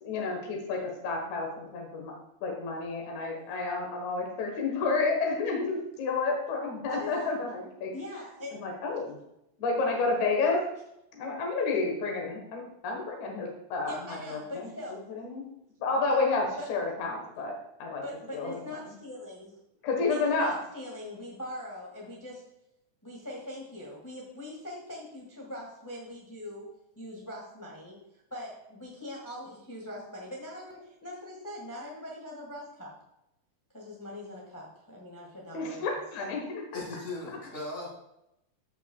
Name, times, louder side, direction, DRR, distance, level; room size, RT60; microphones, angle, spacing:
voice 1, 0.0-2.1 2.4-7.9 8.5-9.2 9.6-10.7 11.1-14.7 15.2-15.4 15.8-18.0 18.3-18.6 19.8-20.6 35.5-36.8, left 3 dB, 75° left, 1 dB, 2.7 m, -30 dB
voice 2, 6.9-7.3 7.9-8.5 13.8-15.0 16.6-16.7 18.0-19.5 20.1-22.5 23.0-26.7 26.9-28.0 28.3-32.9 33.7-36.0, left 1 dB, 10° left, -4 dB, 1.0 m, -42 dB
voice 3, 36.7-37.9, left 2 dB, 30° left, -3 dB, 2.7 m, -38 dB
14.5 x 5.7 x 2.3 m, 0.83 s
omnidirectional pair, 3.4 m